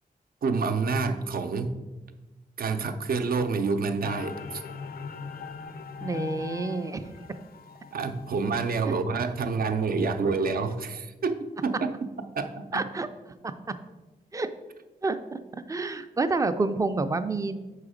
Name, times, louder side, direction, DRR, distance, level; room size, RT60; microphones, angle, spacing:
voice 1, 0.4-1.8 2.6-4.6 7.9-12.8, right 4 dB, 70° right, 7 dB, 0.6 m, -28 dB
sound 1, 4.0-8.6, left 5 dB, 70° left, 0.5 m, -40 dB
voice 2, 6.0-7.0 12.7-13.1 13.4-13.7 14.3-14.5 15.0-17.6, right 3 dB, 20° right, 10 dB, 0.4 m, -29 dB
6.3 x 4.8 x 4.9 m, 1.1 s
wide cardioid pair, 130°, 16 cm